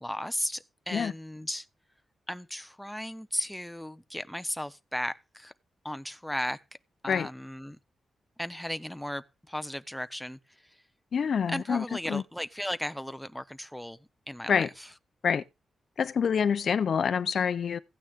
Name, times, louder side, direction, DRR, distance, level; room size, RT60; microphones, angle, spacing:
voice 1, 0.0-1.7 2.3-5.5 5.8-6.6 7.0-7.8 8.4-10.8 11.5-14.0 14.3-14.9, equal, ahead, 0.7 m, -36 dB
voice 2, 11.1-12.2 14.5-14.7 15.2-15.4 16.0-17.8, left 7 dB, 50° left, 0.6 m, -26 dB
15.5 x 9.2 x 3.6 m
wide cardioid pair, 155°, 0 cm